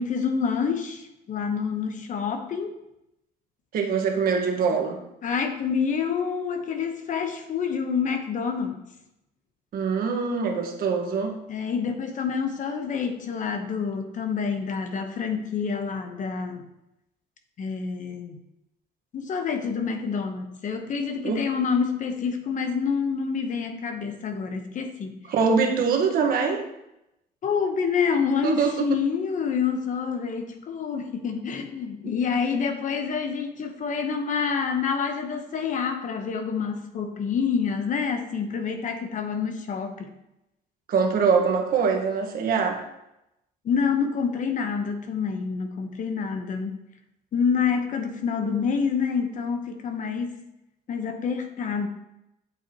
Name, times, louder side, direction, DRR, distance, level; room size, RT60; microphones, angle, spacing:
voice 1, 0.0-2.7 5.2-8.8 11.5-16.6 17.6-18.4 19.1-25.1 27.4-40.1 43.6-46.8 47.3-50.4 50.9-51.9, left 6 dB, 50° left, 6 dB, 1.1 m, -27 dB
voice 2, 3.7-5.0 9.7-11.4 21.2-21.4 25.3-26.6 28.4-28.9 40.9-42.8, right 5 dB, 60° right, 2 dB, 1.6 m, -23 dB
8.0 x 7.6 x 3.1 m, 0.86 s
cardioid pair, 110°, 17 cm